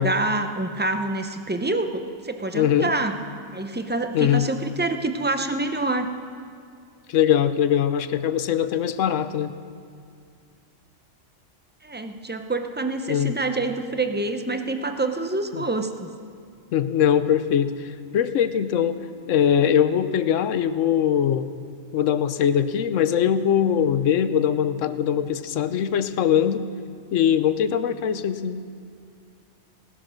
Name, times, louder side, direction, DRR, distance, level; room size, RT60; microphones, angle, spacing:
voice 1, 0.0-3.2 3.5-6.1 11.8-16.1, right 2 dB, 10° right, 7 dB, 0.5 m, -26 dB
voice 2, 2.5-2.9 4.1-4.5 7.1-9.6 13.1-13.3 15.5-15.6 16.7-19.0 19.3-21.5 21.9-26.7 27.1-28.6, left 9 dB, 80° left, 12 dB, 1.0 m, -21 dB
18.5 x 11.5 x 6.4 m, 2.3 s
omnidirectional pair, 1.3 m